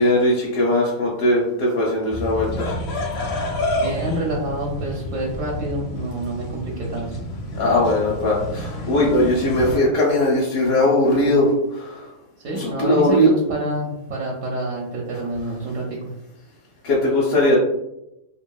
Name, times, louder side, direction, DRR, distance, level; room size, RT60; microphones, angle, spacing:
voice 1, 0.0-2.7 7.6-12.1 12.5-13.3 16.8-17.6, left 1 dB, 85° left, -5 dB, 1.1 m, -19 dB
sound 1, 2.1-9.8, left 1 dB, 65° left, 0.6 m, -29 dB
voice 2, 3.7-7.2 12.4-16.0, right 1 dB, 70° right, -2 dB, 0.9 m, -27 dB
2.8 x 2.7 x 2.2 m, 0.85 s
omnidirectional pair, 1.5 m